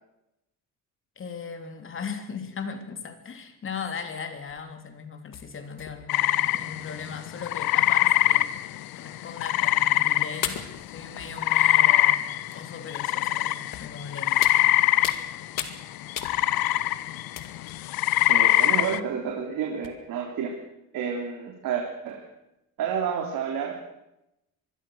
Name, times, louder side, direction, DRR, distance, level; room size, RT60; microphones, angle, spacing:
voice 1, 1.1-8.5 8.9-10.6 10.9-14.6, left 6 dB, 35° left, 7 dB, 3.3 m, -38 dB
sound 1, 4.5-4.7 5.3-6.3 7.1-7.2 7.4-7.5 8.6-8.7 9.6-9.8 10.4-11.8 12.5-12.6 13.7-14.0 14.4-15.3 15.6-15.8 16.2-16.8 17.4-17.9 18.4-18.7 19.4-19.5 19.8-19.9, left 10 dB, 65° left, 2.4 m, -37 dB
sound 2, 6.1-10.8 11.0-19.0, left 15 dB, 85° left, 1.1 m, -23 dB
voice 2, 18.3-20.5 20.9-22.3 22.8-23.7, right 7 dB, 70° right, 1 dB, 3.6 m, -30 dB
25.5 x 21.5 x 6.5 m, 0.86 s
cardioid pair, 155°, 35 cm